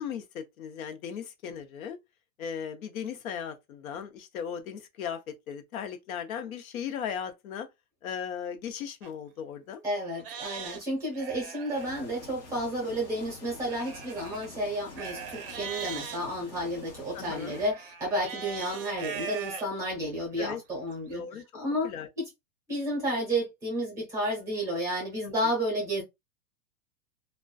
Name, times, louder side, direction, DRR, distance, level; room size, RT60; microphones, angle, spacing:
voice 1, 0.0-2.0 2.4-7.7 8.0-9.8 17.1-17.6 20.4-20.6 21.1-21.4 21.8-22.1 25.2-25.3, left 8 dB, 90° left, 0.8 m, -37 dB
Livestock farm animals working animals, 9.0-9.1 9.7-9.8 10.2-11.9 13.6-16.2 17.3-19.6 20.2-20.3 20.9-21.0, right 7 dB, 45° right, 0.5 m, -40 dB
voice 2, 9.8-21.2 21.5-22.2 22.7-26.0, equal, 10° right, 0.7 m, -31 dB
sound 1, 11.7-17.7, left 3 dB, 35° left, 0.4 m, -48 dB
2.5 x 2.2 x 2.2 m
supercardioid pair, 175°, 41 cm